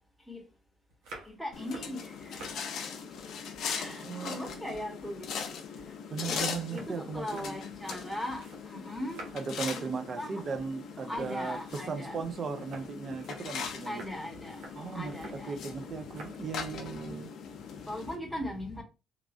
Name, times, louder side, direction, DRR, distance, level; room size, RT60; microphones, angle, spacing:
sound 1, 0.9-2.6 3.0-4.2 4.4-8.7 8.9-9.6 10.0-10.3 10.5-10.7 11.1-15.4 16.0-16.4 16.7-17.1, right 2 dB, 85° right, 0.9 m, -51 dB
voice 1, 1.2-2.6 3.6-5.3 6.3-6.4 6.7-9.2 9.7-9.8 10.2-10.4 11.1-12.2 13.8-14.7 14.9-16.1 16.6-18.8, left 1 dB, 5° right, 1.1 m, -39 dB
sound 2, 1.5-18.2, left 6 dB, 70° left, 0.5 m, -40 dB
voice 2, 3.8-4.7 6.1-7.6 9.3-14.0 14.8-17.3, right 5 dB, 45° right, 0.5 m, -37 dB
3.0 x 2.4 x 2.5 m
cardioid pair, 100°, 0 cm